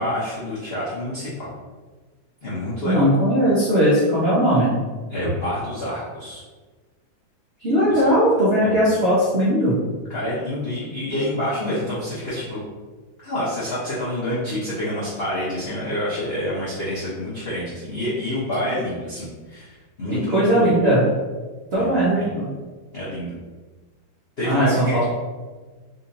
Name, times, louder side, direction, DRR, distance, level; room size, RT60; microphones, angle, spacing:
voice 1, 0.0-1.5 2.4-3.1 5.1-6.4 7.9-8.1 8.6-8.8 10.1-12.6 13.2-20.7 21.7-22.3 22.9-23.4 24.4-25.1, left 1 dB, 55° left, -9 dB, 0.6 m, -28 dB
voice 2, 2.8-4.7 7.6-9.8 20.3-21.0 21.7-22.5 24.4-25.1, equal, 65° right, -9 dB, 0.6 m, -18 dB
4.1 x 2.9 x 2.6 m, 1.3 s
omnidirectional pair, 2.2 m